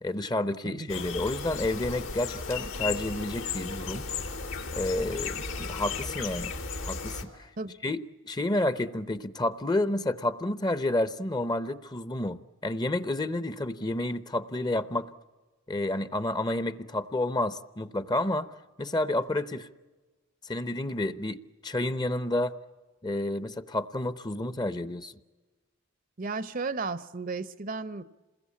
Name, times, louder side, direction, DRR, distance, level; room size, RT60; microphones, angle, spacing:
voice 1, 0.0-4.1 4.7-6.5 6.9-7.5 7.8-15.1 15.7-18.5 18.8-19.7 20.4-22.5 23.0-25.1, left 1 dB, 20° left, 0.7 m, -30 dB
voice 2, 0.6-1.1 7.6-7.7 26.2-28.0, right 4 dB, 45° right, 0.7 m, -34 dB
sound 1, 0.9-7.2, left 5 dB, 80° left, 3.3 m, -35 dB
28.0 x 21.0 x 8.5 m
head